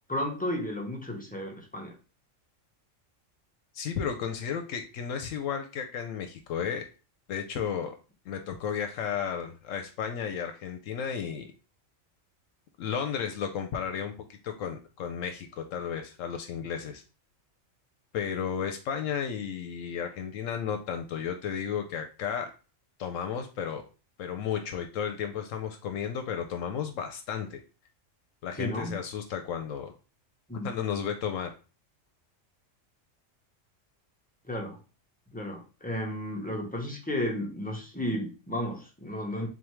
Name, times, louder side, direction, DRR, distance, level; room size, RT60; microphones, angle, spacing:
voice 1, 0.1-1.9 28.6-29.0 30.5-30.7 34.5-34.8 35.3-39.5, left 1 dB, 10° left, 0 dB, 0.7 m, -33 dB
voice 2, 3.7-6.8 7.3-8.0 8.3-11.5 12.8-17.0 18.1-22.5 23.0-23.8 24.2-27.6 28.4-29.9 30.6-31.5, left 7 dB, 80° left, 5 dB, 0.9 m, -33 dB
3.8 x 3.4 x 3.0 m, 0.34 s
omnidirectional pair, 1.3 m